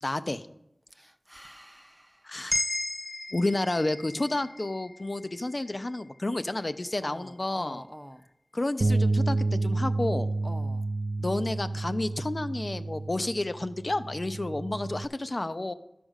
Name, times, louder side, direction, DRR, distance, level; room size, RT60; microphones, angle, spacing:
voice 1, 0.0-0.5 2.2-2.5 3.3-7.8 8.5-10.3 11.2-15.7, left 2 dB, 60° left, 10 dB, 0.5 m, -30 dB
voice 2, 0.9-2.4 7.0-8.3 10.4-10.9, equal, 5° right, 6 dB, 0.6 m, -46 dB
sound 1, 2.5-6.8, left 1 dB, 30° left, 0.9 m, -36 dB
Bass guitar, 8.8-15.1, right 2 dB, 80° right, 0.3 m, -30 dB
12.5 x 5.1 x 6.4 m, 0.84 s
wide cardioid pair, 40°, 0 cm